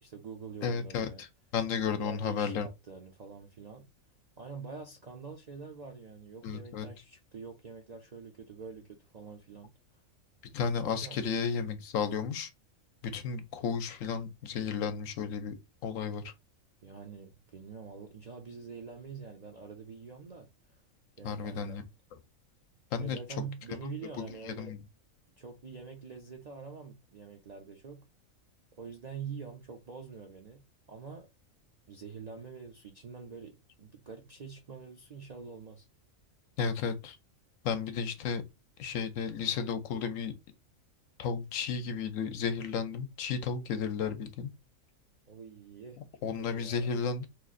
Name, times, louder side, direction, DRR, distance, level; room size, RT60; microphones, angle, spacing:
voice 1, 0.0-1.2 2.0-3.9 4.4-9.7 11.0-11.2 16.8-20.5 21.2-21.8 23.0-24.7 25.4-28.0 28.8-30.6 30.9-31.3 31.9-35.9 45.3-46.0 46.3-46.9, right 5 dB, 55° right, 0.4 m, -45 dB
voice 2, 0.6-1.3 1.5-2.7 6.4-6.9 10.5-12.5 13.0-15.5 15.8-16.3 21.2-21.8 22.9-23.2 23.7-24.8 36.6-37.2 37.6-38.4 38.8-40.3 41.2-44.5 46.2-47.3, left 6 dB, 75° left, 1.0 m, -33 dB
3.0 x 2.4 x 3.7 m
omnidirectional pair, 1.4 m